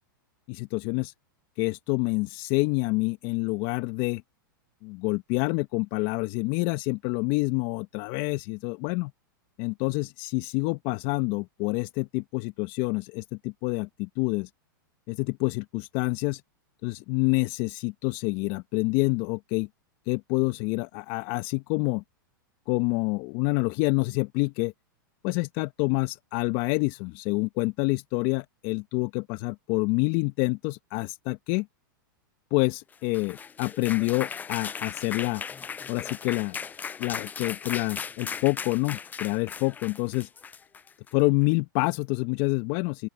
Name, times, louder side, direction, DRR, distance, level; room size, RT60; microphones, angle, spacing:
voice 1, 0.5-1.1 1.6-4.2 4.8-9.1 9.6-14.5 15.1-16.4 16.8-19.7 20.1-22.0 22.7-24.7 25.2-31.7 32.5-35.4 35.9-36.6 37.0-40.3 41.1-43.1, left 25 dB, 45° left, 1.2 m, -27 dB
sound 1, 32.9-41.2, left 6 dB, 15° left, 0.5 m, -37 dB
open air
hypercardioid pair, 115°, 11 cm